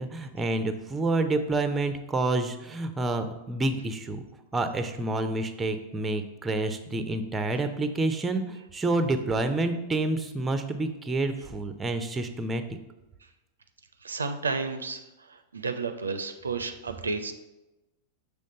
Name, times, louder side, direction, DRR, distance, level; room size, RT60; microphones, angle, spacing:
voice 1, 0.0-4.2 4.5-12.6, right 2 dB, 15° right, 8 dB, 0.6 m, -28 dB
voice 2, 14.0-17.3, right 4 dB, 75° right, 8 dB, 0.5 m, -32 dB
6.4 x 3.4 x 5.4 m, 0.98 s
figure-of-eight pair, 90°, 0 cm